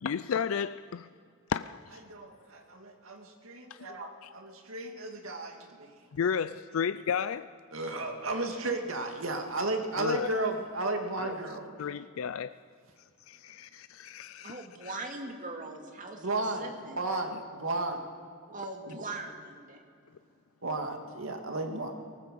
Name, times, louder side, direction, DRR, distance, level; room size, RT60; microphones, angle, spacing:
voice 1, 0.0-1.1 1.5-2.0 3.7-3.9 4.2-4.3 6.2-7.5 10.0-10.3 11.2-11.3 11.8-12.5 13.3-15.0, left 7 dB, 85° left, 0.4 m, -33 dB
voice 2, 2.1-5.6 7.7-11.7 16.2-16.6 16.9-18.0 18.5-18.6 18.8-19.2 20.6-21.9, right 2 dB, 85° right, 2.3 m, -34 dB
voice 3, 14.4-16.2 16.6-16.7 18.5-19.8, right 2 dB, 40° right, 2.3 m, -40 dB
19.0 x 18.5 x 7.7 m
head